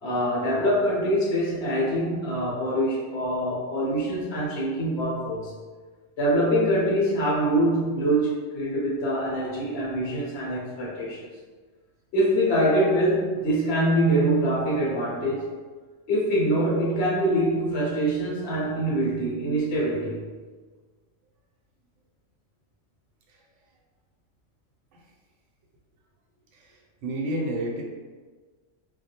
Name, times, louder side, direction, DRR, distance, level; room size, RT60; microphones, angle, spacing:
voice 1, 0.0-5.5 6.2-11.2 12.1-15.5 16.1-20.2, right 1 dB, 55° left, -6 dB, 1.0 m, -24 dB
voice 2, 26.5-27.8, right 1 dB, 70° right, -2 dB, 0.9 m, -31 dB
2.3 x 2.1 x 2.8 m, 1.4 s
omnidirectional pair, 1.3 m